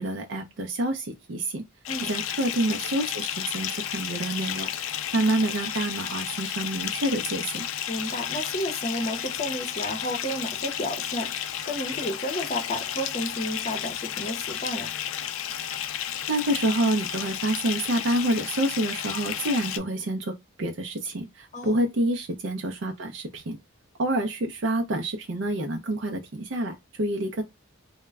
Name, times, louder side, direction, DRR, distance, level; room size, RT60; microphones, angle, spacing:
voice 1, 0.0-1.6 2.1-4.7 5.1-7.7 16.3-20.3 20.6-23.6 24.0-27.4, right 1 dB, 60° right, 0.4 m, -27 dB
Bathtub (filling or washing) / Fill (with liquid), 1.9-19.8, left 10 dB, 75° left, 0.3 m, -32 dB
voice 2, 7.9-14.9 21.5-21.9, equal, 35° left, 0.6 m, -32 dB
2.2 x 2.0 x 3.3 m
head